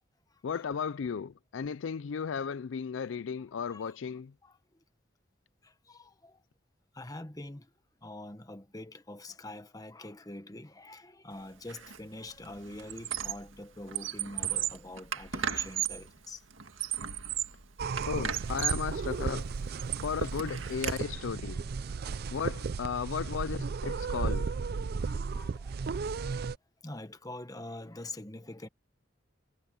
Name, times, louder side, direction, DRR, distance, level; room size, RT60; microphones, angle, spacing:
voice 1, 0.4-4.3 18.1-19.5 20.0-21.6 22.3-24.5, left 6 dB, 75° left, 0.4 m, -35 dB
voice 2, 3.6-4.0 4.4-4.6 5.6-6.4 6.9-7.7 8.0-16.5 19.9-20.0 21.9-22.3 24.1-24.5 24.8-26.0 26.2-26.3 26.8-28.7, left 1 dB, 20° left, 1.3 m, -45 dB
Squeak, 11.7-12.0 12.3-13.5 13.8-16.1 16.6-17.6 18.0-18.9 19.4-21.0, right 10 dB, 90° right, 1.9 m, -35 dB
sound 1, 17.8-26.6, right 4 dB, 50° right, 0.4 m, -34 dB
head